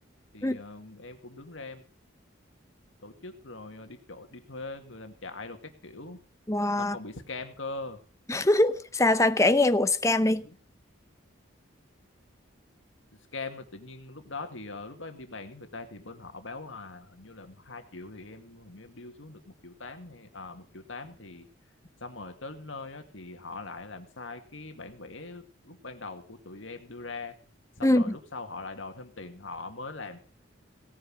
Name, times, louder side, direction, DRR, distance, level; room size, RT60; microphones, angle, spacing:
voice 1, 0.3-1.8 3.0-6.2 6.8-8.0 10.4-10.6 13.3-21.5 22.0-27.3 27.8-30.2, left 3 dB, 70° left, 2.0 m, -42 dB
voice 2, 6.5-7.0 8.3-10.4 27.8-28.1, left 2 dB, 15° left, 0.8 m, -23 dB
17.0 x 9.4 x 6.1 m
head